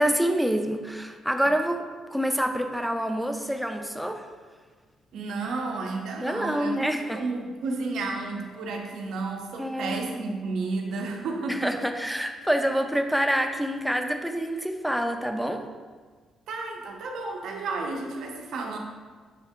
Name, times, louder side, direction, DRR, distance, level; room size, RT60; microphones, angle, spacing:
voice 1, 0.0-1.8 2.1-4.2 6.2-7.2 9.6-10.3 11.5-15.6, equal, ahead, 5 dB, 0.4 m, -27 dB
voice 2, 5.1-11.8 16.5-18.8, right 3 dB, 75° right, 1 dB, 0.6 m, -32 dB
5.6 x 2.7 x 3.5 m, 1.5 s
cardioid pair, 90°, 0 cm